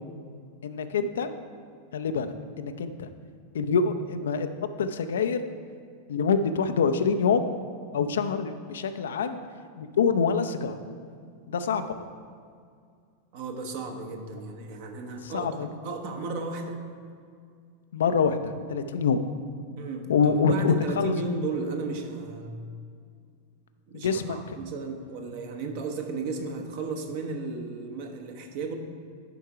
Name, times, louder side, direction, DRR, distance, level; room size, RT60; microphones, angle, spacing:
voice 1, 0.6-1.3 1.9-3.1 3.5-5.4 6.1-7.5 7.9-9.4 9.8-10.8 11.5-11.9 15.2-15.7 17.9-19.2 20.1-21.1 23.9-24.6, left 5 dB, 65° left, 9 dB, 0.5 m, -26 dB
voice 2, 13.3-16.9 19.8-22.6 23.9-28.7, right 3 dB, 50° right, 4 dB, 1.0 m, -34 dB
10.5 x 4.5 x 4.8 m, 2.2 s
figure-of-eight pair, 90°, 0 cm